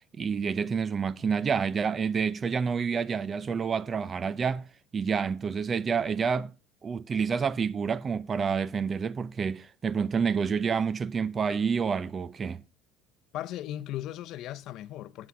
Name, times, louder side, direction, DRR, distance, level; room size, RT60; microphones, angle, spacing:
voice 1, 0.2-4.6 4.9-6.5 6.8-12.6, right 6 dB, 30° right, 0.6 m, -28 dB
voice 2, 13.3-15.3, left 13 dB, 60° left, 0.7 m, -37 dB
9.6 x 8.0 x 4.8 m
cardioid pair, 120°, 0 cm